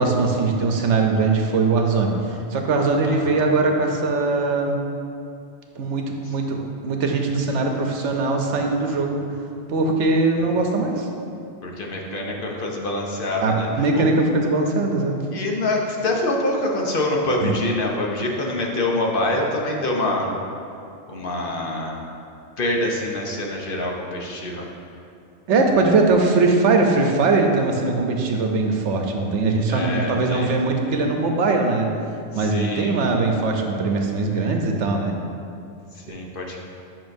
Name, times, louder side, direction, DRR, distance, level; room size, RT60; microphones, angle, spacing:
voice 1, 0.0-4.8 5.8-9.3 9.7-11.1 13.4-15.2 17.4-17.5 25.5-31.9 32.3-35.1, right 3 dB, 90° right, 2 dB, 1.0 m, -21 dB
voice 2, 3.1-3.5 11.6-13.7 13.9-14.0 15.3-20.3 21.1-22.1 22.6-24.7 29.7-30.5 32.3-33.0 34.3-34.5 36.1-36.6, left 1 dB, 55° left, -1 dB, 0.9 m, -25 dB
9.1 x 5.8 x 2.6 m, 2.6 s
omnidirectional pair, 1.2 m